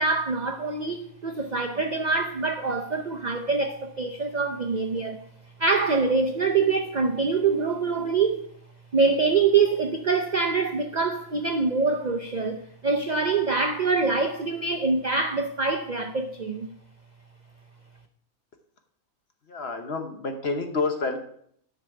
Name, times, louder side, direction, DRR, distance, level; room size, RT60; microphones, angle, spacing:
voice 1, 0.0-5.2 5.6-8.5 8.9-16.7, right 4 dB, 60° right, 0.4 m, -25 dB
voice 2, 19.5-21.2, left 3 dB, 50° left, 1.1 m, -28 dB
11.0 x 6.2 x 4.8 m
omnidirectional pair, 1.6 m